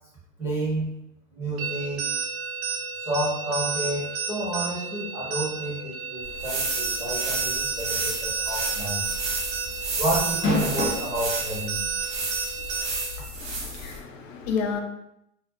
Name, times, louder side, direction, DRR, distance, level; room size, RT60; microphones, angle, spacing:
voice 1, 0.4-0.9 1.3-2.1 3.0-9.0 10.0-11.8, right 1 dB, 5° right, -8 dB, 0.5 m, -30 dB
sound 1, 1.6-13.2, right 5 dB, 55° right, 0.5 m, -32 dB
sound 2, 6.2-14.0, right 2 dB, 85° right, 1.1 m, -32 dB
sound 3, 8.5-8.7 9.0-9.1 10.2-11.1 11.9-12.0 13.5-13.6, left 2 dB, 40° left, 0.9 m, -25 dB
voice 2, 13.3-14.8, left 5 dB, 75° left, 3 dB, 0.6 m, -31 dB
2.6 x 2.1 x 2.4 m, 0.80 s
supercardioid pair, 145°, 39 cm